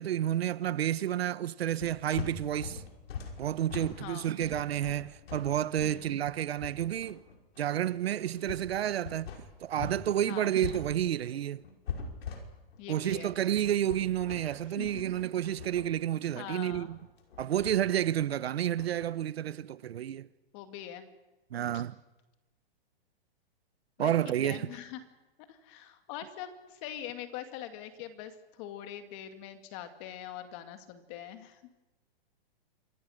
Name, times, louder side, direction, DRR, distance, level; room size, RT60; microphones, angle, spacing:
voice 1, 0.0-2.8 3.4-7.2 7.6-9.3 9.6-11.6 12.9-17.0 17.4-20.3 21.5-21.9 24.0-24.7, right 11 dB, 85° right, 1.1 m, -30 dB
sound 1, 1.8-10.1 10.3-19.1, left 6 dB, 80° left, 5.6 m, -42 dB
voice 2, 4.0-4.4 5.8-6.1 10.3-10.6 12.8-13.4 14.8-15.0 16.3-16.9 20.5-21.1 21.7-21.8 24.0-25.0 25.5-31.6, left 11 dB, 30° left, 2.2 m, -43 dB
27.0 x 22.5 x 6.6 m
hypercardioid pair, 165°, 30 cm